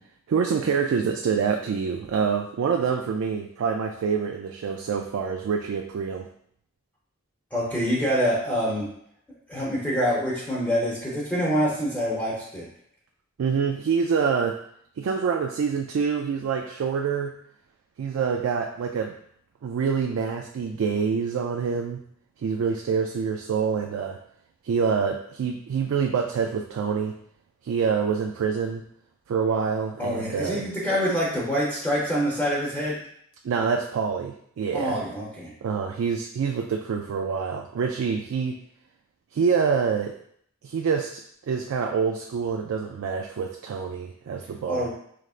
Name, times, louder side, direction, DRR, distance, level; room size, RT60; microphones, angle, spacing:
voice 1, 0.3-6.3 13.4-14.6 15.0-17.3 18.0-19.2 19.6-22.0 22.4-24.2 24.6-27.2 27.6-28.8 29.3-30.7 33.4-35.0 35.6-38.6 39.3-40.2 40.6-44.9, right 6 dB, 70° right, 4 dB, 0.3 m, -26 dB
voice 2, 7.5-8.9 9.5-12.7 30.0-33.0 34.7-35.5 44.7-44.9, equal, 5° left, -7 dB, 0.8 m, -26 dB
4.9 x 3.1 x 2.4 m, 0.68 s
head